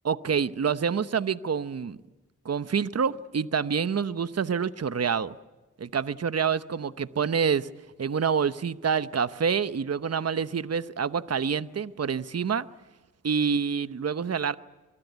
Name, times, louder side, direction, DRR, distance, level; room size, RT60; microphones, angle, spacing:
voice 1, 0.0-2.0 2.4-5.3 5.8-7.7 8.0-12.7 13.2-14.5, right 6 dB, 50° right, 13 dB, 0.9 m, -27 dB
24.5 x 23.5 x 8.2 m, 1.2 s
cardioid pair, 40°, 33 cm